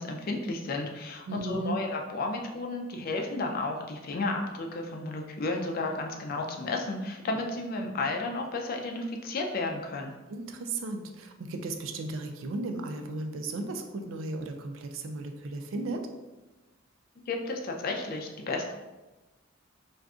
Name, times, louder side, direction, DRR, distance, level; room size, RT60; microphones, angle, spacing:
voice 1, 0.0-10.1 17.3-18.7, left 2 dB, 45° left, 2 dB, 0.4 m, -32 dB
voice 2, 1.3-1.8 10.3-16.1, right 2 dB, 80° right, 5 dB, 0.4 m, -35 dB
2.5 x 2.3 x 3.6 m, 1.1 s
head